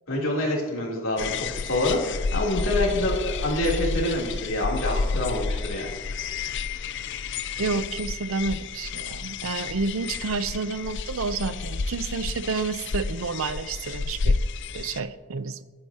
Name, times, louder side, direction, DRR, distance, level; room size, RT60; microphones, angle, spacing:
voice 1, 0.1-5.9, left 1 dB, 80° left, -3 dB, 3.3 m, -26 dB
sound 1, 1.2-15.0, left 4 dB, 60° left, 0.5 m, -30 dB
voice 2, 7.6-14.4 14.7-15.6, right 4 dB, 85° right, 12 dB, 0.7 m, -30 dB
20.5 x 9.7 x 2.9 m, 1.3 s
head